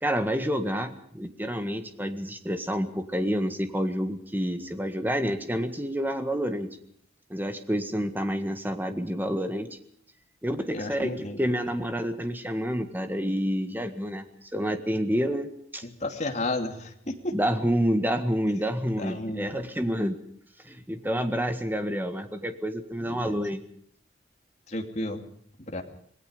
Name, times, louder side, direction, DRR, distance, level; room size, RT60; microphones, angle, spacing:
voice 1, 0.0-6.7 7.3-9.8 10.4-14.2 14.5-15.8 17.3-20.2 20.6-23.6, equal, 10° right, 8 dB, 1.7 m, -28 dB
voice 2, 10.7-11.4 15.8-17.3 19.0-19.5 23.1-23.4 24.7-25.2 25.6-25.8, left 2 dB, 40° left, 4 dB, 2.7 m, -32 dB
26.5 x 19.5 x 5.2 m, 0.64 s
head